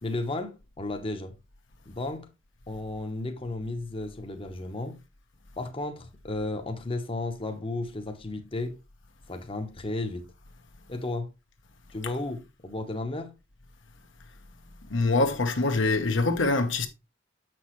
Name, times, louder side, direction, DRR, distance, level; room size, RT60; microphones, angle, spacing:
voice 1, 0.0-1.3 1.9-2.3 2.7-5.0 5.6-8.8 9.3-10.3 10.9-11.3 11.9-13.3, left 2 dB, 30° left, 0.9 m, -33 dB
voice 2, 14.9-16.9, left 3 dB, 70° left, 1.0 m, -24 dB
7.3 x 6.1 x 3.1 m
head